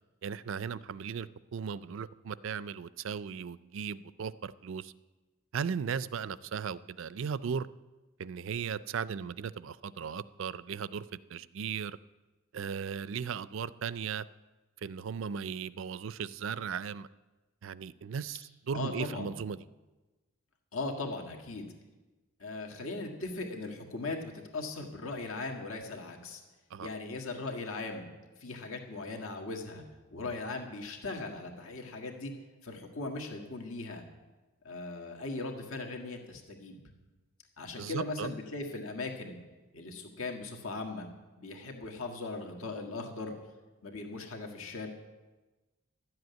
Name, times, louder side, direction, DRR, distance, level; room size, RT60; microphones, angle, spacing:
voice 1, 0.2-4.9 5.5-7.7 8.2-11.0 11.3-12.0 12.5-14.3 14.8-17.1 17.6-19.6 26.7-26.9 37.8-38.3, right 6 dB, 60° right, 17 dB, 0.4 m, -37 dB
voice 2, 18.7-19.4 20.7-21.7 22.4-26.4 26.8-28.0 28.4-29.8 30.1-32.3 32.6-34.0 34.6-36.8 37.6-39.4 39.7-41.1 41.4-43.3 43.8-44.9, left 3 dB, 70° left, 2 dB, 1.8 m, -39 dB
12.0 x 7.9 x 9.3 m, 1.2 s
head